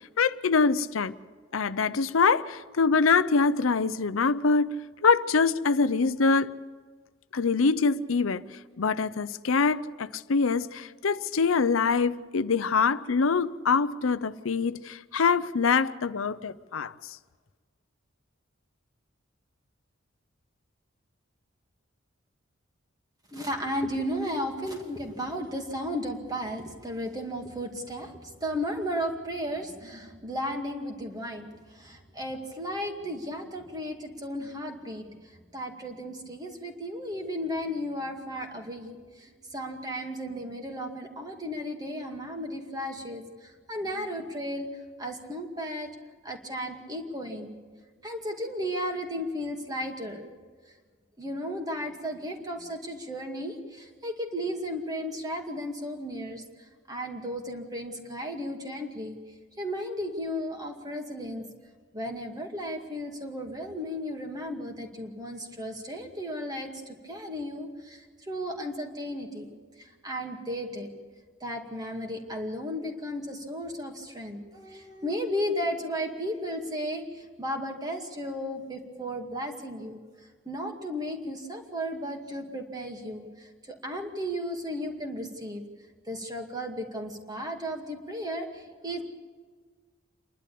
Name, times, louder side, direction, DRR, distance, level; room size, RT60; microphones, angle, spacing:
voice 1, 0.2-1.1 1.5-6.6 7.3-8.4 8.8-17.2, left 4 dB, 90° left, 0.7 m, -24 dB
voice 2, 23.3-45.9 46.2-47.5 48.0-50.3 50.7-50.8 51.2-59.2 59.6-61.4 61.9-70.9 71.4-85.6 86.0-89.0, equal, 20° right, 2.2 m, -34 dB
28.0 x 11.5 x 8.5 m
head